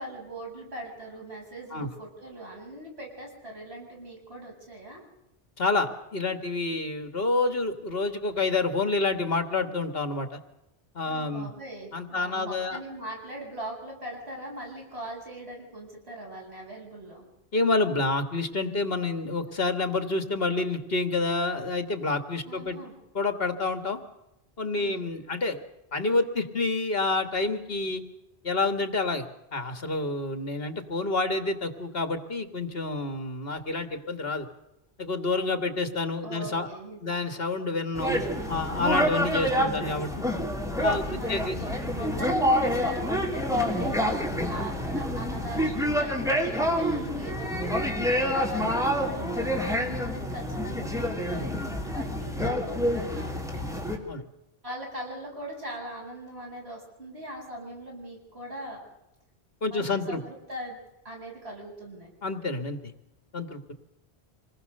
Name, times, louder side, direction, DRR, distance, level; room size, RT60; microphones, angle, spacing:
voice 1, 0.0-5.0 11.0-17.2 22.4-23.0 24.7-25.1 36.2-37.2 38.3-38.5 41.1-53.7 54.6-58.8 59.7-62.1, right 1 dB, 75° right, -2 dB, 8.5 m, -41 dB
voice 2, 5.6-10.4 10.9-11.5 11.9-12.8 17.5-22.8 23.1-24.0 24.6-25.6 25.9-28.0 28.4-29.3 29.5-34.5 35.0-36.7 37.0-38.2 38.5-40.1 40.8-41.7 48.6-48.7 54.1-54.2 59.6-60.2 62.2-62.9 63.3-63.7, left 3 dB, 65° left, 8 dB, 2.1 m, -28 dB
sound 1, 37.9-54.0, equal, 5° right, 3.4 m, -27 dB
26.5 x 20.0 x 6.7 m, 0.90 s
omnidirectional pair, 1.1 m